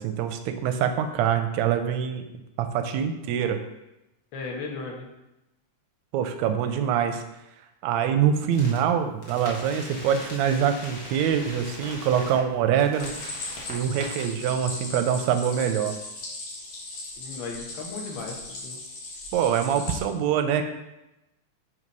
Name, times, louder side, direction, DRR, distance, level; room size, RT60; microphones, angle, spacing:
voice 1, 0.0-2.2 2.6-3.6 6.1-7.2 7.8-13.1 13.7-16.0 19.3-20.6, right 8 dB, 80° right, 7 dB, 1.6 m, -24 dB
voice 2, 4.3-5.0 17.2-18.8, left 4 dB, 65° left, 0 dB, 1.2 m, -36 dB
sound 1, 8.5-8.8 9.2-12.4 12.8-14.2, left 1 dB, 50° left, 1.4 m, -40 dB
Stream, 13.0-20.0, left 2 dB, 80° left, 3.4 m, -38 dB
7.9 x 3.0 x 5.3 m, 0.94 s
omnidirectional pair, 3.5 m